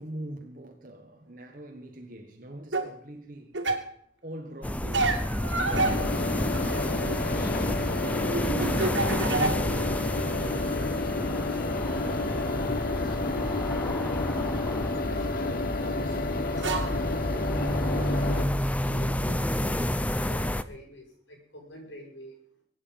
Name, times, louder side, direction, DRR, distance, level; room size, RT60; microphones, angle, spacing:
voice 1, 0.0-3.6 4.2-6.2 9.4-13.5 14.2-16.9 17.9-18.6, right 1 dB, 50° right, 1.6 m, -44 dB
sound 1, 2.7-2.9 3.5-3.9 4.9-7.2 7.5-9.9 10.2-11.1 12.3-12.4 13.9-15.6 16.3-16.4 16.6-17.0 18.0-18.1, right 3 dB, 90° right, 2.6 m, -31 dB
sound 2, 4.6-20.6, left 1 dB, 10° left, 0.6 m, -30 dB
sound 3, 5.7-18.5, left 3 dB, 55° left, 0.8 m, -30 dB
voice 2, 8.0-8.7 18.1-22.4, equal, 85° left, 6.8 m, -46 dB
23.5 x 9.8 x 5.4 m
head